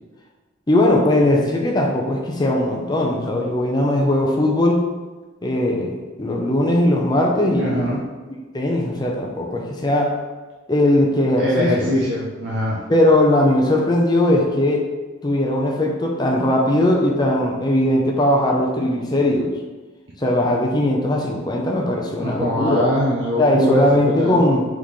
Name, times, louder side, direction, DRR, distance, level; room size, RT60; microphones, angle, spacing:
voice 1, 0.7-4.8 5.4-8.0 8.5-10.1 10.7-11.9 12.9-14.8 15.2-19.5 20.2-22.8 23.4-24.7, left 1 dB, 20° left, -1 dB, 0.5 m, -19 dB
voice 2, 7.5-8.0 11.4-12.8 22.2-24.4, equal, 65° right, -5 dB, 0.6 m, -22 dB
4.1 x 3.6 x 3.1 m, 1.3 s
head